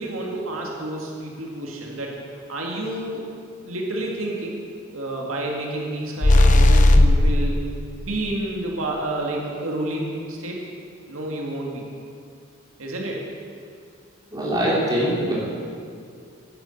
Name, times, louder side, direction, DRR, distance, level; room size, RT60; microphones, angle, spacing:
voice 1, 0.0-2.2 2.5-3.3 3.7-4.6 4.9-7.6 8.0-10.6 11.1-11.8 12.8-13.3, right 1 dB, 90° right, -1 dB, 2.1 m, -29 dB
sound 1, 6.2-7.4, left 1 dB, 40° left, 0.7 m, -14 dB
voice 2, 14.3-15.3, right 1 dB, 20° right, -7 dB, 3.5 m, -22 dB
11.5 x 9.9 x 7.9 m, 2.3 s
head